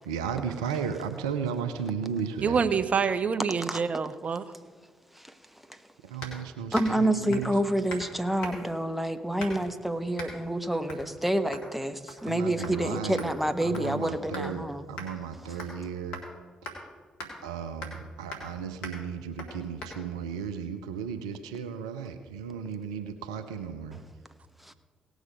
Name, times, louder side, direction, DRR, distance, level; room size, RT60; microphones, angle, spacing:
voice 1, 0.0-2.6 6.1-7.6 12.2-13.3 13.6-16.2 16.7-16.9 17.4-24.0, right 7 dB, 90° right, 8 dB, 0.6 m, -35 dB
voice 2, 2.4-4.4, right 6 dB, 45° right, 12 dB, 0.8 m, -26 dB
sound 1, 6.2-6.4 6.7-7.0 7.3-7.5 7.9-8.1 8.4-8.8 9.4-9.7 10.2-10.3 10.9-11.1 11.5-11.7 12.1-12.3 12.6-12.8 13.2-14.5 15.0-15.1 15.6-15.8 16.1-16.3 16.6-16.8 17.2-17.3 17.8-18.0 18.3-18.5 18.8-19.0 19.4-19.5 19.8-19.9, left 1 dB, 80° left, 2.1 m, -40 dB
voice 3, 6.7-14.8 24.6-24.7, right 1 dB, 5° right, 9 dB, 1.1 m, -28 dB
18.0 x 6.5 x 5.0 m, 1.6 s
hypercardioid pair, 40°, 3 cm